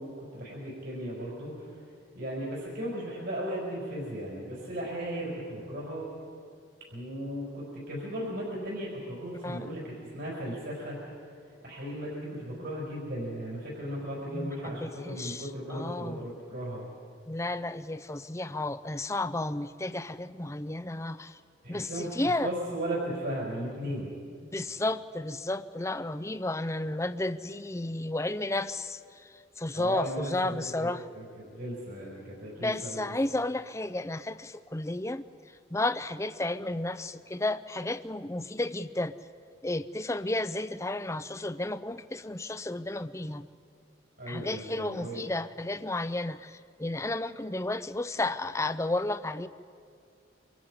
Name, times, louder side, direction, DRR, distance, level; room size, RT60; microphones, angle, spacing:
voice 1, 0.0-1.8 2.1-6.1 6.9-11.2 11.6-16.9 21.6-24.1 29.7-33.1 44.2-45.2, right 1 dB, 65° right, -5 dB, 5.5 m, -36 dB
voice 2, 9.4-9.8 14.3-14.5 14.8-15.4 15.7-16.2 17.3-21.3 21.7-22.5 24.5-29.0 29.6-31.0 32.6-35.2 35.7-39.1 39.6-43.4 44.3-49.5, left 2 dB, 15° left, 12 dB, 0.6 m, -32 dB
27.5 x 24.5 x 5.0 m, 2.3 s
head